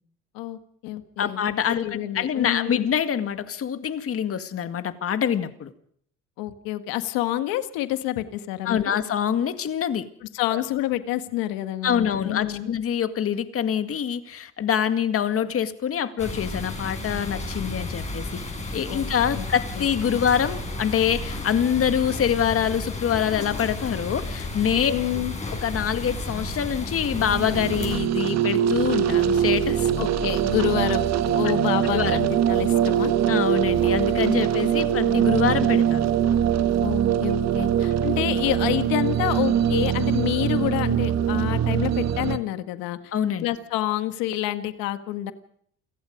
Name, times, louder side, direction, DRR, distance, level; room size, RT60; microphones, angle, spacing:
voice 1, 0.3-1.4 1.8-2.9 6.4-9.0 10.3-12.7 18.9-19.1 19.3-19.5 19.8-20.2 24.9-25.3 30.0-31.1 31.3-33.1 36.8-43.1 43.4-45.3, left 14 dB, 85° left, 10 dB, 1.9 m, -28 dB
voice 2, 1.2-5.7 8.7-10.1 10.5-10.6 11.8-18.4 18.7-24.9 25.6-30.0 31.9-32.2 33.3-36.1 43.1-43.5, left 8 dB, 40° left, 10 dB, 2.0 m, -25 dB
sound 1, 16.2-28.0, left 2 dB, 20° left, 7.8 m, -32 dB
sound 2, 27.1-42.4, right 9 dB, 50° right, 1.5 m, -22 dB
28.5 x 17.5 x 5.3 m, 0.64 s
cardioid pair, 115°, 34 cm